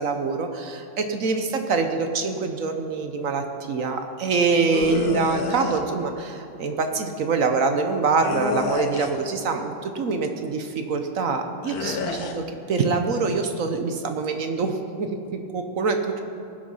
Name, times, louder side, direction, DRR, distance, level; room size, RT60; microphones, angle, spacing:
voice 1, 0.0-16.2, right 4 dB, 55° right, 6 dB, 1.1 m, -25 dB
sound 1, 4.7-5.8 8.2-9.3 11.7-12.4, left 5 dB, 60° left, 1.3 m, -30 dB
18.5 x 6.7 x 5.6 m, 2.7 s
omnidirectional pair, 2.0 m